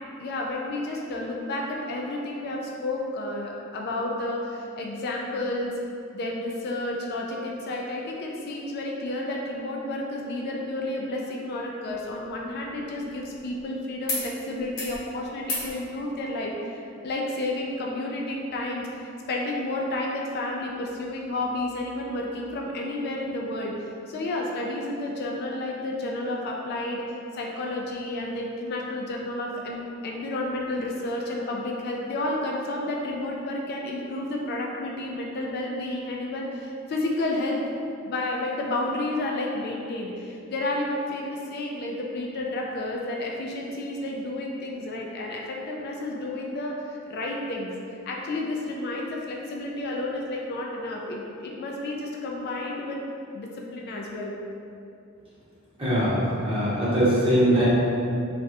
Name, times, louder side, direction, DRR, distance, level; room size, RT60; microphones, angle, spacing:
voice 1, 0.2-5.7 6.1-27.1 27.3-37.6 38.1-47.7 48.1-53.0 53.3-54.4, left 2 dB, 50° left, -1 dB, 0.3 m, -31 dB
sound 1, 11.9-13.7 14.0-14.3 14.6-15.0 15.4-15.7 17.0-17.1, left 2 dB, 80° left, 0.8 m, -35 dB
voice 2, 55.8-56.2 56.4-57.7, equal, 25° right, -11 dB, 1.0 m, -21 dB
3.2 x 2.4 x 2.6 m, 2.6 s
head